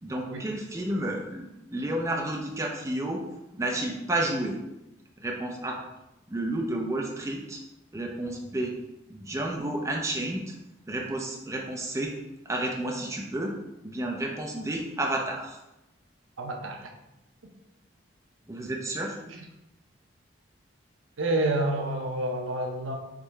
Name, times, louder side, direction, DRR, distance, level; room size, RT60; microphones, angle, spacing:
voice 1, 0.0-3.2 3.5-4.6 5.2-5.8 6.3-7.6 7.9-8.7 9.1-10.6 10.9-12.2 12.5-13.6 13.8-15.6 18.5-19.2, right 1 dB, 15° right, 0 dB, 0.4 m, -31 dB
voice 2, 16.4-16.9 19.3-19.4 21.2-23.0, right 1 dB, 80° right, 3 dB, 0.6 m, -29 dB
3.7 x 3.0 x 4.3 m, 0.93 s
head